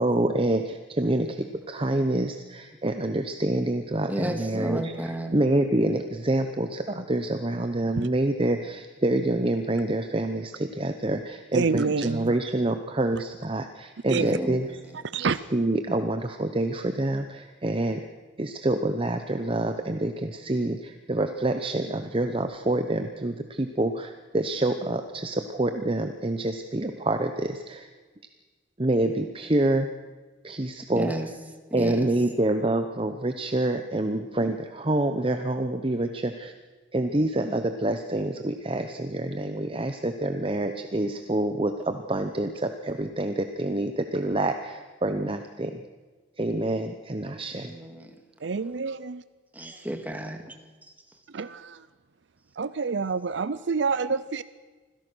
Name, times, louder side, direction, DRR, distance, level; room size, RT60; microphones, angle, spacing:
voice 1, 0.0-14.8 15.5-18.1 18.4-27.9 28.8-29.9 30.4-31.1 31.7-36.5 36.9-45.8 46.4-47.7, right 1 dB, 30° right, 7 dB, 0.9 m, -27 dB
voice 2, 4.1-5.3 14.1-14.6 30.9-31.3 31.8-31.9 47.5-48.1 49.6-50.4, right 1 dB, 10° right, 4 dB, 2.0 m, -32 dB
voice 3, 11.5-12.3 14.1-14.4 15.1-15.4 48.4-49.2 51.4-51.5 52.6-54.4, right 4 dB, 65° right, 15 dB, 0.6 m, -27 dB
25.5 x 16.5 x 6.3 m, 1.3 s
head